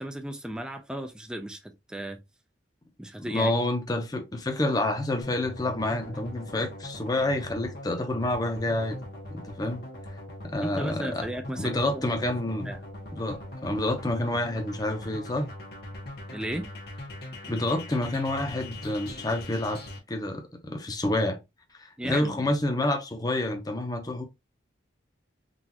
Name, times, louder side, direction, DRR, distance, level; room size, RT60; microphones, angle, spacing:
voice 1, 0.0-2.2 3.0-3.5 10.6-12.3 12.6-12.8 16.3-16.7 22.0-22.5, right 1 dB, 5° right, 0.4 m, -35 dB
voice 2, 3.2-9.0 9.3-9.8 10.4-11.3 11.6-12.7 13.2-15.5 17.5-19.8 20.1-21.4 21.8-24.2, left 1 dB, 20° left, 0.7 m, -28 dB
sound 1, 5.2-20.0, left 1 dB, 55° left, 1.2 m, -41 dB
3.9 x 2.5 x 2.8 m
head